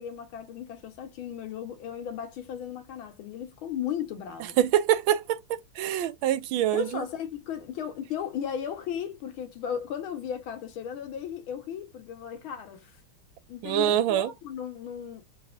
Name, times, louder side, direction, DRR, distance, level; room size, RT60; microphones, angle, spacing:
voice 1, 0.0-4.6 6.7-13.0 13.5-15.2, left 8 dB, 80° left, 1.9 m, -36 dB
voice 2, 4.6-7.0 13.6-14.3, right 11 dB, 80° right, 1.4 m, -25 dB
4.6 x 2.9 x 2.5 m
omnidirectional pair, 2.2 m